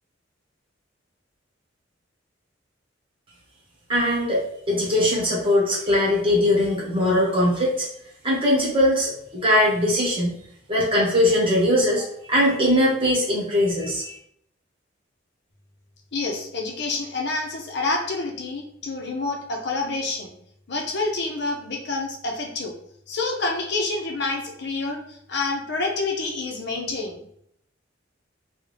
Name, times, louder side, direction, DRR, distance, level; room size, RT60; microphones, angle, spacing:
voice 1, 3.9-7.9 8.2-10.4 10.7-14.1, left 1 dB, 30° right, -4 dB, 1.3 m, -21 dB
voice 2, 16.1-20.3 20.7-22.7 23.1-27.2, left 3 dB, 60° left, 1 dB, 0.7 m, -28 dB
3.6 x 2.3 x 3.3 m, 0.72 s
head